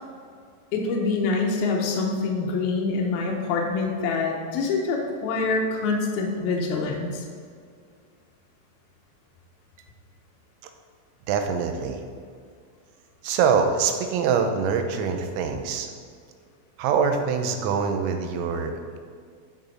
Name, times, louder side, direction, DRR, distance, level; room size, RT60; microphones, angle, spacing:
voice 1, 0.7-7.2, left 4 dB, 90° left, 0 dB, 2.2 m, -25 dB
voice 2, 11.3-12.0 13.2-15.9 16.8-19.0, right 6 dB, 90° right, 6 dB, 3.5 m, -24 dB
12.0 x 6.3 x 4.2 m, 2.1 s
omnidirectional pair, 5.9 m